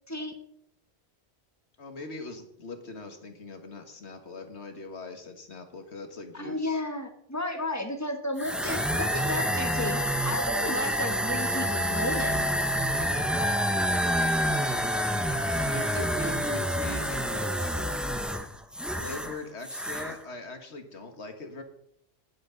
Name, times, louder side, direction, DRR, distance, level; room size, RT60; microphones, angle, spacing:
voice 1, 1.8-6.8 15.7-17.9 19.0-21.6, left 2 dB, 85° left, 6 dB, 1.9 m, -41 dB
voice 2, 6.3-10.0 10.2-12.4, left 1 dB, 15° left, 5 dB, 1.4 m, -33 dB
sound 1, 8.4-19.4 19.6-20.2, equal, ahead, 0.7 m, -28 dB
19.5 x 7.8 x 4.0 m, 0.72 s
omnidirectional pair, 1.1 m